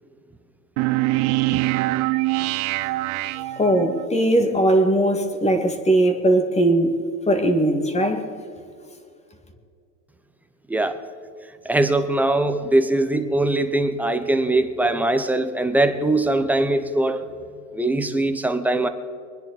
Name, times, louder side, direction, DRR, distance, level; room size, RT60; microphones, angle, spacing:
sound 1, 0.8-4.0, right 19 dB, 45° right, 0.6 m, -23 dB
voice 1, 3.6-6.9 7.3-8.2, right 1 dB, 15° left, 5 dB, 2.1 m, -19 dB
voice 2, 10.7-11.0 11.6-17.3 17.7-18.9, right 2 dB, 5° right, 8 dB, 0.8 m, -21 dB
26.0 x 10.0 x 4.2 m, 2.4 s
supercardioid pair, 130°, 50 cm